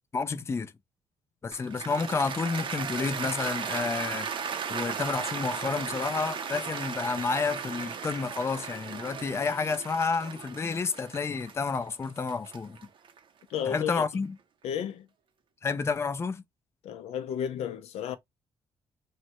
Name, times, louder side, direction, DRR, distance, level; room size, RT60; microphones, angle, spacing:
voice 1, 0.1-0.7 1.4-4.3 4.7-12.8 13.7-14.4 15.6-16.4, left 4 dB, 25° left, 0.4 m, -30 dB
Cheering / Applause, 1.5-13.7, right 6 dB, 55° right, 0.6 m, -36 dB
voice 2, 13.5-14.0 14.6-15.1 16.8-18.2, left 9 dB, 80° left, 0.5 m, -32 dB
3.2 x 2.1 x 2.8 m
cardioid pair, 90°, 10 cm